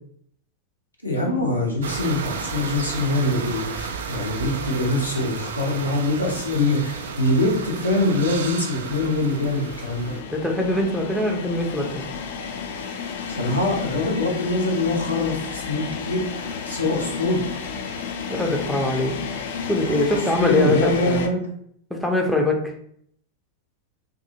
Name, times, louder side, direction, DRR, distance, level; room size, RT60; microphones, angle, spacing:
voice 1, 1.0-10.1 13.4-17.4 20.4-21.5, left 2 dB, 85° left, -3 dB, 0.8 m, -24 dB
sound 1, 1.8-10.2, right 5 dB, 65° right, 0.3 m, -33 dB
sound 2, 8.8-21.3, left 6 dB, 55° left, 0.3 m, -32 dB
voice 2, 10.3-12.1 18.3-19.1 19.7-21.2 21.9-22.6, left 2 dB, ahead, 0 dB, 0.5 m, -22 dB
2.6 x 2.6 x 2.7 m, 0.65 s
figure-of-eight pair, 90°, 0 cm